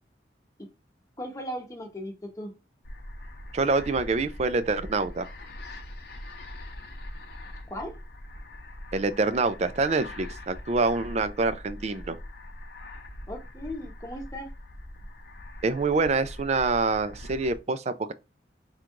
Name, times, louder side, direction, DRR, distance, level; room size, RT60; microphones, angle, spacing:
voice 1, 1.2-2.5 7.7-8.0 13.3-14.5, equal, 20° left, 1.0 m, -37 dB
sound 1, 2.8-17.6, left 1 dB, 55° left, 0.8 m, -42 dB
voice 2, 3.5-5.3 8.9-12.2 15.6-18.1, right 3 dB, 35° right, 0.4 m, -26 dB
3.7 x 2.3 x 4.6 m
head